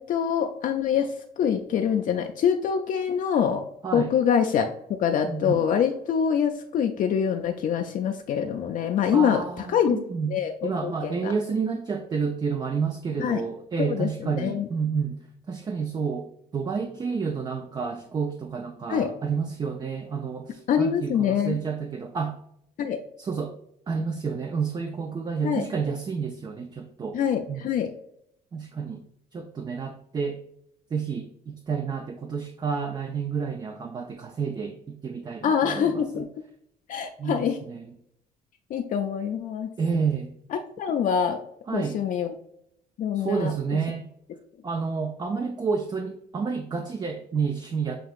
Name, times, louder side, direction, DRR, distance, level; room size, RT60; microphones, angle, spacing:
voice 1, 0.0-3.6 3.9-4.7 5.0-10.0 10.3-11.3 13.2-13.4 13.8-14.7 18.9-19.1 20.7-21.6 22.8-23.0 25.4-25.6 27.1-27.9 35.4-36.3 36.9-37.6 38.7-39.7 40.8-41.4 41.7-42.3 43.0-43.5, left 8 dB, 50° left, 4 dB, 0.4 m, -25 dB
voice 2, 5.2-5.6 9.1-10.4 10.6-22.4 23.2-23.5 23.9-27.2 27.5-27.6 28.5-29.0 29.3-30.4 30.9-36.3 37.2-37.9 39.8-40.3 41.7-42.0 43.1-44.1 44.6-48.0, right 5 dB, 25° right, 6 dB, 0.4 m, -30 dB
7.5 x 2.8 x 2.4 m, 0.75 s
cardioid pair, 110°, 17 cm